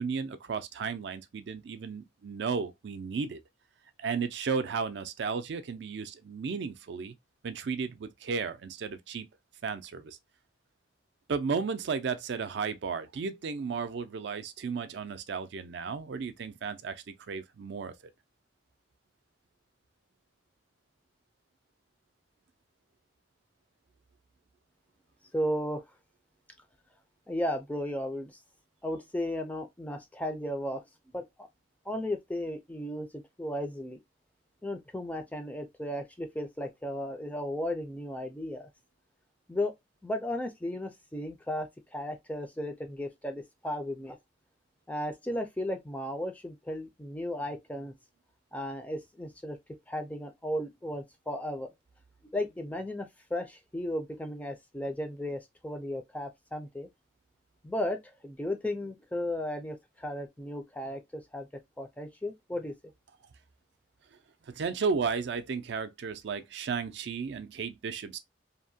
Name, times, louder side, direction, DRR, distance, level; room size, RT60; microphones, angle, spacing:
voice 1, 0.0-3.4 4.0-7.1 7.4-9.3 9.6-10.2 11.3-17.9 64.5-68.2, right 5 dB, 60° right, 0.4 m, -34 dB
voice 2, 25.3-25.8 27.3-28.3 28.8-30.8 31.1-31.5 31.9-34.0 34.6-38.7 39.5-39.7 40.0-44.2 44.9-47.9 48.5-49.6 49.9-51.7 52.3-56.9 57.6-61.5 61.8-62.7, left 1 dB, 10° left, 0.4 m, -35 dB
2.7 x 2.1 x 2.6 m
head